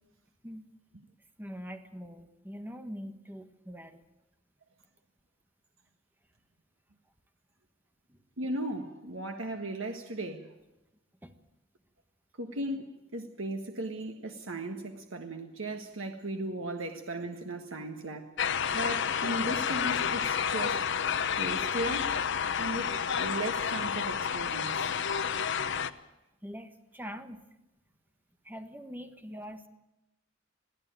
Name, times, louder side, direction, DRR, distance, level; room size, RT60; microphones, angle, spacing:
voice 1, 1.4-4.0 8.1-8.2 11.2-11.3 25.0-25.3 26.4-27.4 28.4-29.7, equal, 10° right, 1.5 m, -43 dB
voice 2, 8.4-10.5 12.4-18.3 18.7-20.9 21.4-22.2 22.6-25.0, right 1 dB, 90° right, 1.6 m, -37 dB
sound 1, 18.4-25.9, left 7 dB, 65° left, 0.9 m, -30 dB
22.0 x 15.0 x 9.0 m
head